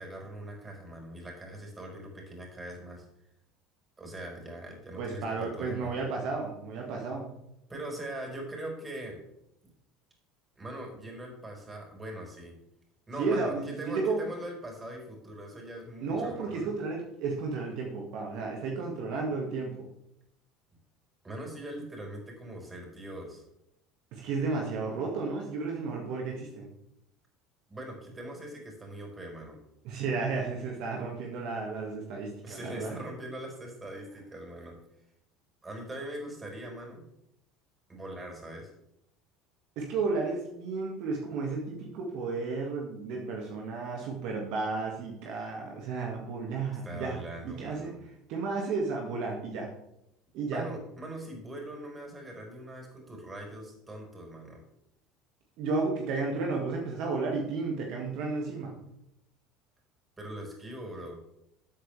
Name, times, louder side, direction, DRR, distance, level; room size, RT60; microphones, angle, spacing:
voice 1, 0.0-3.0 4.0-5.9 7.7-9.2 10.6-12.6 13.1-16.7 21.2-23.4 27.7-29.6 32.4-34.8 35.6-37.0 37.9-38.7 46.8-48.0 50.5-54.6 60.2-61.2, right 1 dB, 20° right, 1 dB, 4.8 m, -41 dB
voice 2, 5.0-7.3 13.2-14.3 16.0-19.9 24.1-26.7 29.8-32.9 39.8-47.2 47.4-47.9 48.3-49.7 50.3-50.7 55.6-58.8, right 4 dB, 65° right, 0 dB, 2.0 m, -33 dB
13.5 x 8.2 x 3.4 m, 0.80 s
hypercardioid pair, 70°, 0 cm